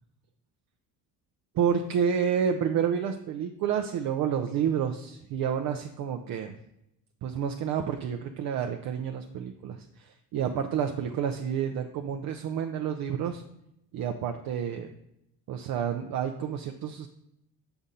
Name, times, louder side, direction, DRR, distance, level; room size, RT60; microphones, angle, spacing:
voice 1, 1.5-6.6 7.2-13.4 13.9-14.9 15.5-17.1, right 8 dB, 60° right, 6 dB, 0.6 m, -29 dB
6.9 x 3.7 x 4.1 m, 0.82 s
supercardioid pair, 85°, 39 cm